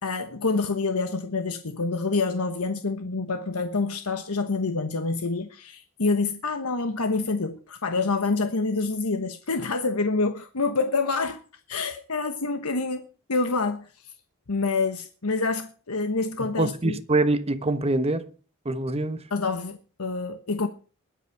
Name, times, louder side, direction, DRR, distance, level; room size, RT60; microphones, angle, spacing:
voice 1, 0.0-11.4 11.7-13.9 14.5-17.0 19.3-20.7, left 3 dB, 85° left, 1.2 m, -27 dB
voice 2, 16.6-18.3 18.6-19.3, right 2 dB, 30° right, 1.2 m, -24 dB
21.0 x 8.2 x 4.7 m
head